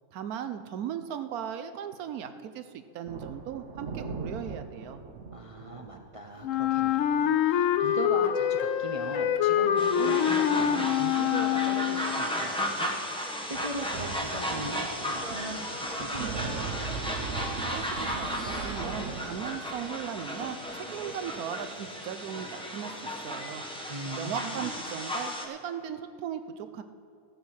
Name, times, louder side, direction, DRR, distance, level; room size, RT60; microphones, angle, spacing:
voice 1, 0.1-5.0 17.6-23.6 24.2-26.8, right 9 dB, 80° right, 10 dB, 1.2 m, -38 dB
sound 1, 3.1-7.3 7.6-7.8 8.2-8.5 9.1-9.5 13.5-21.5, right 5 dB, 60° right, 1.0 m, -40 dB
voice 2, 5.3-13.0 13.4-16.6 23.9-24.6, right 2 dB, 40° right, 1 dB, 0.5 m, -39 dB
Wind instrument woodwind instrument, 6.4-12.2, left 9 dB, 70° left, 0.9 m, -25 dB
sound 2, 9.8-25.5, equal, 5° left, 0.7 m, -34 dB
15.5 x 6.6 x 6.4 m, 2.3 s
omnidirectional pair, 1.6 m